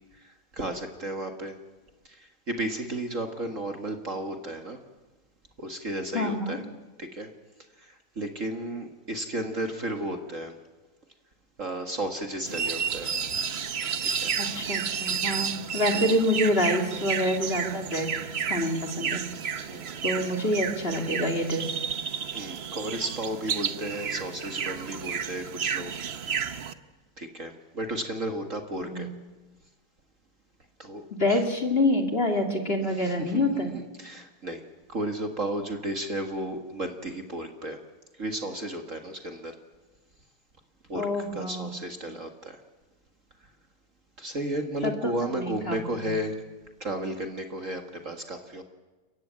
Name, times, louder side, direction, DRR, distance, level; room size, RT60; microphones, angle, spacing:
voice 1, 0.2-1.6 2.1-4.8 5.6-6.7 7.0-7.3 7.8-10.5 11.6-13.1 14.0-14.3 15.9-16.2 19.7-20.0 22.3-26.5 27.2-29.1 30.8-31.4 32.9-34.6 34.9-37.8 38.2-39.5 40.9-41.1 41.3-42.6 44.2-46.4 46.8-48.6, right 1 dB, 40° right, 5 dB, 1.9 m, -34 dB
voice 2, 6.1-6.6 14.4-18.1 18.5-19.2 20.0-21.7 28.8-29.1 31.2-33.7 40.9-41.7 44.8-46.1, left 1 dB, 25° left, 4 dB, 2.5 m, -27 dB
sound 1, 12.5-26.7, right 7 dB, 55° right, 0.7 m, -31 dB
30.0 x 15.0 x 9.5 m, 1.2 s
omnidirectional pair, 2.3 m